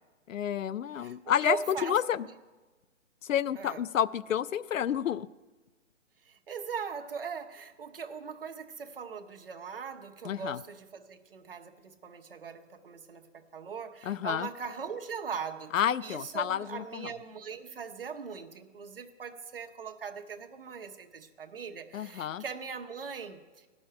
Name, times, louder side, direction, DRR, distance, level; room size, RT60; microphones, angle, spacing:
voice 1, 0.3-2.3 3.2-5.3 10.2-10.6 14.0-14.5 15.7-17.1 21.9-22.4, left 9 dB, 75° left, 19 dB, 0.5 m, -30 dB
voice 2, 0.9-2.0 3.6-3.8 6.2-15.7 16.0-23.7, right 6 dB, 45° right, 5 dB, 1.0 m, -40 dB
16.5 x 6.3 x 8.6 m, 1.3 s
hypercardioid pair, 170°, 39 cm